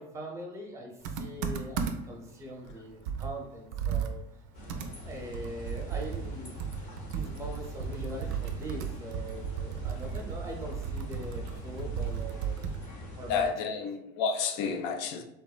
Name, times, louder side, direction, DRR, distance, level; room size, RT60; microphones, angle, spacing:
voice 1, 0.0-4.2 5.0-6.6 7.1-12.7 13.2-13.8, equal, 15° right, 0.7 m, -42 dB
Computer keyboard, 1.0-2.2 2.7-2.8 3.1-12.9, right 7 dB, 75° right, 0.4 m, -35 dB
sound 1, 4.5-13.5, left 1 dB, 85° left, 1.1 m, -44 dB
voice 2, 13.3-15.2, left 5 dB, 60° left, 0.5 m, -30 dB
3.4 x 2.0 x 2.3 m
supercardioid pair, 105°, 21 cm